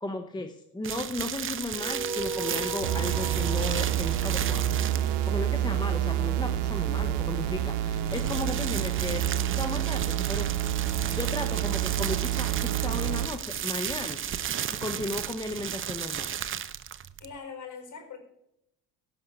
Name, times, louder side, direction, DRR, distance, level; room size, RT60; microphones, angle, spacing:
voice 1, 0.0-4.7 5.3-9.3 9.6-10.7 11.1-14.2 14.6-16.3, left 2 dB, 10° left, 6 dB, 0.9 m, -35 dB
sound 1, 0.8-5.3 7.8-17.4, right 9 dB, 25° right, 0.6 m, -34 dB
sound 2, 1.7-6.5, right 3 dB, 5° right, 1.8 m, -39 dB
sound 3, 2.8-13.3, right 11 dB, 65° right, 1.1 m, -28 dB
voice 2, 5.3-5.7 17.2-18.2, left 6 dB, 40° left, 5 dB, 4.7 m, -43 dB
17.0 x 6.0 x 5.3 m, 0.81 s
supercardioid pair, 90°, 46 cm